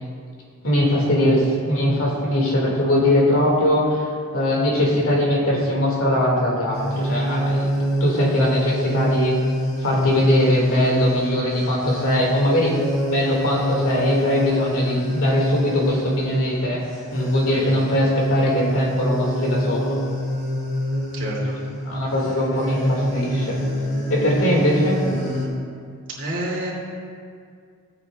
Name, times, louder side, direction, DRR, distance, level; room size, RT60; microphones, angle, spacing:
voice 1, 0.6-4.0 4.3-7.7 8.0-9.4 9.8-12.7 13.0-16.8 17.1-20.0 21.8-23.6 24.1-25.0, left 1 dB, 75° left, -3 dB, 2.4 m, -21 dB
sound 1, 6.7-25.5, equal, 60° left, 1.9 m, -25 dB
voice 2, 26.1-26.7, right 1 dB, 60° right, -6 dB, 2.8 m, -29 dB
16.5 x 8.8 x 2.5 m, 2.1 s
head